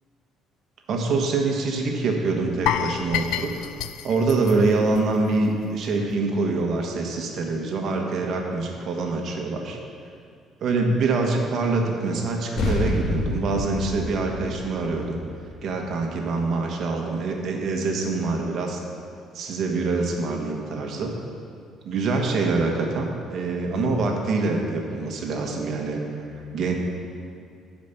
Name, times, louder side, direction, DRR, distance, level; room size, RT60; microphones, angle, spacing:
voice 1, 0.9-3.7 4.0-9.8 10.6-15.2 15.6-18.8 19.3-21.1 21.8-26.3 26.5-26.7, right 3 dB, 50° right, 1 dB, 1.4 m, -25 dB
sound 1, 2.7-5.7 5.9-6.1 6.6-6.7, left 10 dB, 80° left, 0.4 m, -29 dB
sound 2, 12.6-17.4, left 2 dB, 50° left, 1.7 m, -29 dB
12.0 x 5.2 x 7.3 m, 2.3 s
cardioid pair, 165°, 0 cm